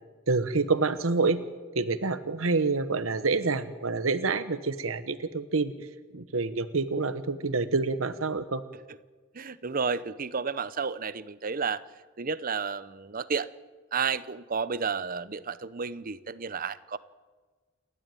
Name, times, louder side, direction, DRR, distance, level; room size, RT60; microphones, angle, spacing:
voice 1, 0.3-1.4 1.7-5.7 6.1-8.6, right 3 dB, 90° right, 12 dB, 1.1 m, -27 dB
voice 2, 9.3-11.8 12.2-13.5 13.9-17.0, right 5 dB, 45° right, 16 dB, 0.8 m, -31 dB
29.0 x 12.5 x 9.1 m, 1.4 s
head